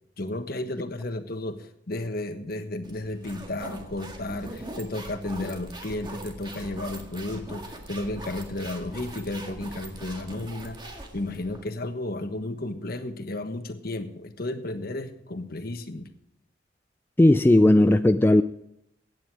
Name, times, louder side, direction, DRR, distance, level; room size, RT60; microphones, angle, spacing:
voice 1, 0.2-16.1, left 2 dB, 55° left, 1.3 m, -33 dB
sound 1, 2.8-11.6, right 1 dB, 25° right, 1.9 m, -41 dB
voice 2, 17.2-18.4, left 1 dB, 10° left, 0.4 m, -17 dB
16.0 x 9.4 x 4.8 m
head